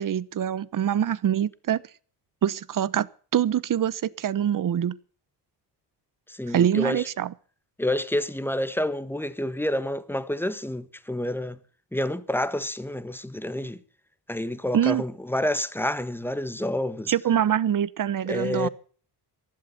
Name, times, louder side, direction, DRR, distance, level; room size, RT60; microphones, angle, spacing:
voice 1, 0.0-1.8 2.4-3.1 3.3-5.0 6.5-7.3 14.7-15.0 17.1-18.7, right 10 dB, 50° right, 1.0 m, -24 dB
voice 2, 6.3-7.1 7.8-11.6 11.9-13.8 14.3-17.1 18.3-18.7, left 1 dB, 5° left, 1.4 m, -28 dB
15.5 x 11.5 x 7.0 m
cardioid pair, 90°, 42 cm